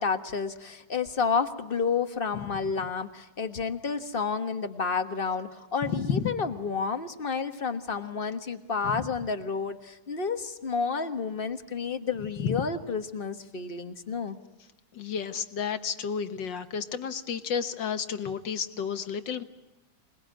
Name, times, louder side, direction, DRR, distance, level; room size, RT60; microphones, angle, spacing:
voice 1, 0.0-14.4, left 5 dB, 30° left, 8 dB, 1.3 m, -30 dB
voice 2, 5.9-6.3 8.8-9.1 12.4-12.6 14.9-19.4, left 7 dB, 60° left, 9 dB, 1.8 m, -31 dB
26.5 x 20.5 x 9.0 m, 1.0 s
omnidirectional pair, 2.4 m